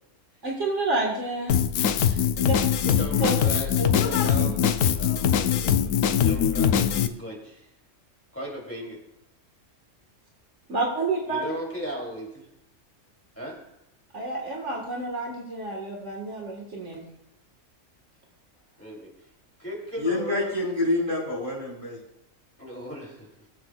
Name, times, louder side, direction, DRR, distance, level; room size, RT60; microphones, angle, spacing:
voice 1, 0.4-1.6 2.0-2.6 3.2-3.3 3.8-4.5 10.7-11.5 14.1-17.1, right 2 dB, 65° right, -1 dB, 1.9 m, -30 dB
Drum kit, 1.5-7.1, left 8 dB, 90° left, 1.0 m, -22 dB
voice 2, 2.8-5.9 6.2-7.7 8.3-9.0 11.3-12.5 13.4-13.5 18.8-19.1 19.6-20.5 22.6-23.5, equal, 10° left, -4 dB, 2.9 m, -36 dB
voice 3, 20.0-22.0, left 2 dB, 25° right, -5 dB, 4.9 m, -27 dB
22.0 x 7.7 x 2.3 m, 0.84 s
omnidirectional pair, 1.4 m